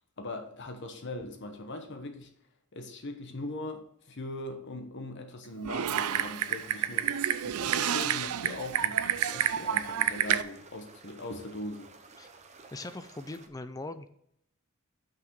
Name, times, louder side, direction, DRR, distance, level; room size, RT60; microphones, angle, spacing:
voice 1, 0.2-2.3 2.7-7.1 7.4-12.1, left 2 dB, 55° left, 5 dB, 1.0 m, -40 dB
Typing, 5.6-10.4, right 9 dB, 80° right, 0.5 m, -29 dB
sound 1, 5.8-13.5, right 3 dB, 30° right, 0.8 m, -54 dB
voice 2, 12.7-14.1, left 2 dB, 15° left, 11 dB, 0.4 m, -40 dB
5.9 x 5.9 x 6.0 m, 0.73 s
head